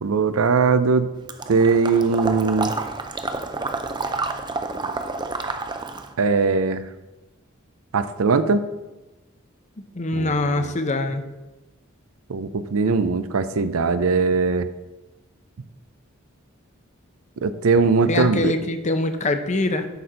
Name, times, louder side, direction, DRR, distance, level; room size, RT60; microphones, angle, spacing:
voice 1, 0.0-1.1 1.5-2.7 6.2-6.8 7.9-8.6 10.1-10.7 12.3-14.7 17.4-18.5, right 4 dB, 85° right, 12 dB, 0.5 m, -20 dB
Water / Liquid, 1.3-6.1, right 3 dB, 20° right, 0.6 m, -29 dB
voice 2, 9.9-11.2 18.1-19.9, left 2 dB, 35° left, 8 dB, 0.7 m, -23 dB
11.0 x 4.3 x 5.1 m, 1.1 s
head